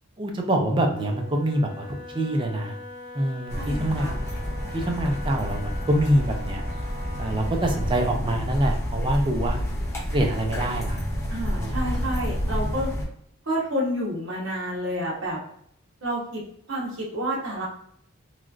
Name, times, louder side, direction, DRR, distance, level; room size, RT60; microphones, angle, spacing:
voice 1, 0.2-2.7 3.1-4.2 4.7-6.6 7.2-9.6 10.1-11.0 11.6-11.7, right 1 dB, 25° right, 2 dB, 0.4 m, -25 dB
Wind instrument woodwind instrument, 0.9-8.1, left 2 dB, 50° left, 0.8 m, -42 dB
sound 1, 3.5-13.0, equal, 10° left, 0.6 m, -29 dB
voice 2, 3.5-4.2 11.3-12.9 13.4-15.4 16.0-16.4 16.7-17.7, equal, 60° right, -4 dB, 1.1 m, -29 dB
3.1 x 2.4 x 2.4 m, 0.70 s
head